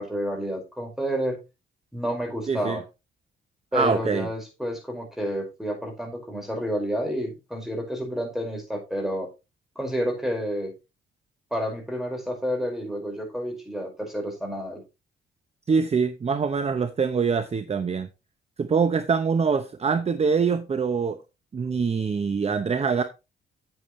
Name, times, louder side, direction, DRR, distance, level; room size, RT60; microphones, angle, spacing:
voice 1, 0.0-1.4 1.9-2.8 3.7-9.3 9.7-10.7 11.5-14.8, equal, ahead, 5.2 m, -30 dB
voice 2, 2.5-2.8 3.7-4.3 15.7-18.1 18.6-21.2 21.5-23.0, right 5 dB, 30° right, 0.8 m, -24 dB
9.1 x 8.8 x 3.2 m
cardioid pair, 90°, 20 cm